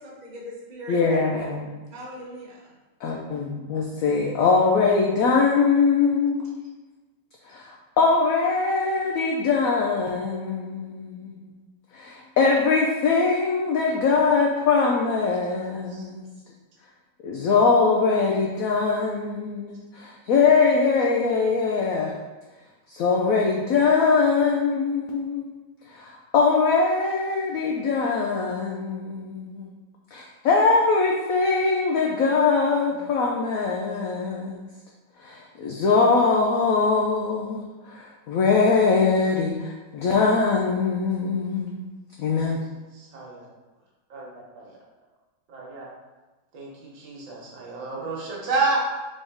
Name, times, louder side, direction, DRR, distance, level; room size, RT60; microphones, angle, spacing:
voice 1, 0.0-1.5 1.9-2.7, equal, 35° right, -4 dB, 0.7 m, -40 dB
voice 2, 0.9-1.7 3.0-6.7 7.5-11.3 11.9-16.2 17.2-22.1 22.9-25.5 25.9-29.7 30.1-34.7 35.2-41.8 42.2-42.6, left 4 dB, 80° left, -1 dB, 0.7 m, -22 dB
voice 3, 43.0-43.4 44.1-44.3 44.6-44.7 45.5-45.9 46.5-48.8, right 3 dB, 80° right, -4 dB, 1.8 m, -29 dB
3.8 x 3.7 x 3.5 m, 1.2 s
omnidirectional pair, 2.0 m